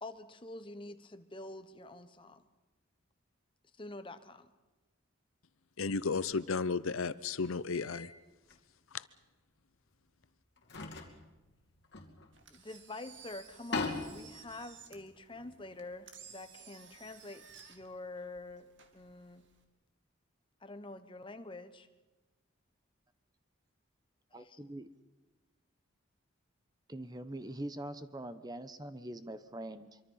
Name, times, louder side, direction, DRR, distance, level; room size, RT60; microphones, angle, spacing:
voice 1, 0.0-2.4 3.8-4.5 12.5-19.4 20.6-21.9 24.3-24.6, left 2 dB, 25° left, 9 dB, 1.1 m, -47 dB
voice 2, 5.8-8.1 8.9-9.0, left 4 dB, 80° left, 15 dB, 0.7 m, -33 dB
sound 1, 6.3-6.5 7.7-8.1 8.5-8.6 9.9-10.0 10.6-12.8 13.1-13.2 13.5-15.9, left 3 dB, 55° left, 2.7 m, -41 dB
Engine, 12.3-19.6, right 7 dB, 60° right, 2.2 m, -56 dB
voice 3, 24.3-24.9 26.9-30.0, right 1 dB, 20° right, 12 dB, 0.9 m, -43 dB
25.0 x 24.0 x 5.7 m, 1.2 s
head